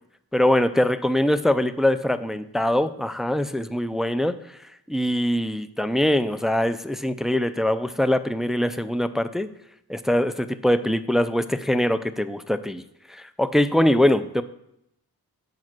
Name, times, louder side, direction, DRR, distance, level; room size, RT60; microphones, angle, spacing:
voice 1, 0.3-4.6 4.9-9.5 9.9-12.8 13.1-14.4, left 1 dB, ahead, 12 dB, 0.4 m, -23 dB
7.4 x 5.4 x 6.0 m, 0.80 s
wide cardioid pair, 65°, 40 cm